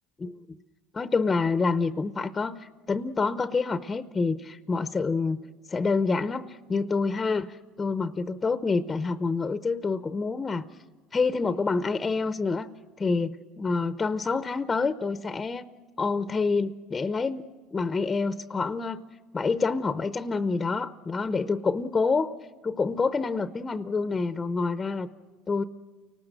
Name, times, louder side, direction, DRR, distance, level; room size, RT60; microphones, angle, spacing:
voice 1, 0.9-5.4 5.7-10.6 11.1-12.7 13.0-15.7 16.0-19.0 19.3-22.3 22.6-25.1 25.5-25.6, left 4 dB, 20° left, 12 dB, 0.7 m, -27 dB
29.5 x 19.5 x 6.6 m, 1.3 s
supercardioid pair, 105°, 0 cm